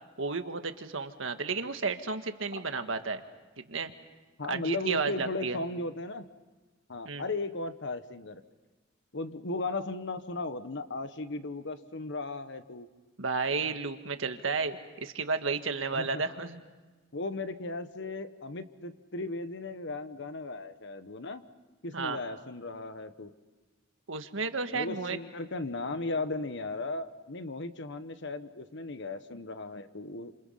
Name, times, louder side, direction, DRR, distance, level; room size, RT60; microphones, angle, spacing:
voice 1, 0.2-3.2 3.7-3.9 4.5-5.6 7.0-7.2 13.2-16.6 21.9-22.2 24.1-25.2, right 4 dB, 75° right, 8 dB, 1.6 m, -32 dB
voice 2, 4.4-6.3 6.9-8.4 9.1-12.9 15.9-16.2 17.1-21.4 21.8-23.3 24.7-30.3, left 3 dB, 65° left, 11 dB, 1.3 m, -36 dB
29.5 x 27.5 x 5.8 m, 1.2 s
head